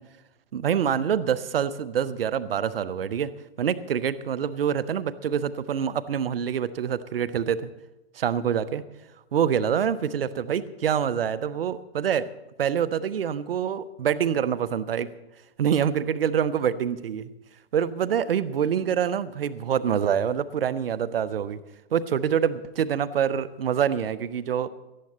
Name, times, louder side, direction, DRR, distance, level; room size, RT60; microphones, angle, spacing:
voice 1, 0.5-3.3 3.6-7.7 8.1-8.8 9.3-12.3 12.6-15.1 15.6-17.3 17.7-21.6 21.9-24.7, right 8 dB, 60° right, 15 dB, 0.9 m, -26 dB
18.0 x 13.0 x 4.2 m, 1.0 s
figure-of-eight pair, 125°, 33 cm